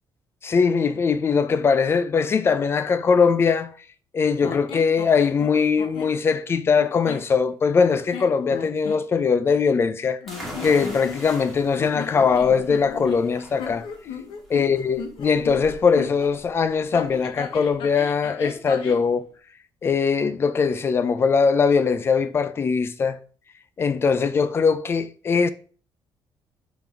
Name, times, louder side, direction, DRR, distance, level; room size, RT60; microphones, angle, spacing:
voice 1, 0.4-3.7 4.1-10.2 10.6-13.9 14.5-19.2 19.8-23.2 23.8-25.5, left 5 dB, 30° left, 0.5 m, -21 dB
sound 1, 4.4-6.2 6.7-7.3 7.8-9.0 10.2-11.5 11.8-16.3 16.9-19.1, left 6 dB, 85° left, 1.2 m, -36 dB
sound 2, 10.3-17.7, equal, ahead, 2.3 m, -42 dB
5.6 x 5.3 x 4.6 m
cardioid pair, 155°, 8 cm